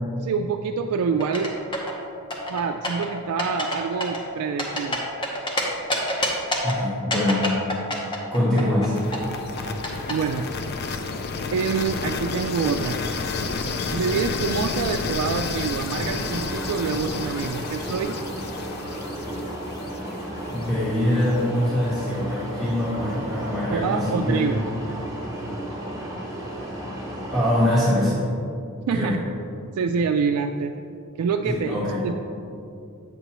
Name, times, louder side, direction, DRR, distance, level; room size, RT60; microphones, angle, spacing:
voice 1, 0.2-1.5 2.5-5.1 10.1-10.5 11.5-13.0 13.9-18.2 23.7-24.6 28.9-29.2 29.8-30.8 31.2-31.8 32.0-32.1, right 5 dB, 85° right, 5 dB, 0.3 m, -26 dB
sound 1, 1.2-1.9 2.3-3.1 3.4-3.8 4.0-5.6 5.9-6.7 7.1-8.9 9.1-10.1, left 1 dB, 20° left, 0.9 m, -26 dB
voice 2, 6.6-7.5 8.3-8.9 14.1-14.2 20.5-24.5 27.3-28.2 28.9-29.2 31.5-32.0, left 1 dB, ahead, -12 dB, 1.4 m, -23 dB
sound 2, 8.9-20.9, left 4 dB, 45° left, 0.4 m, -31 dB
sound 3, 15.9-27.8, right 1 dB, 15° right, 1.5 m, -34 dB
8.4 x 6.7 x 3.0 m, 2.6 s
head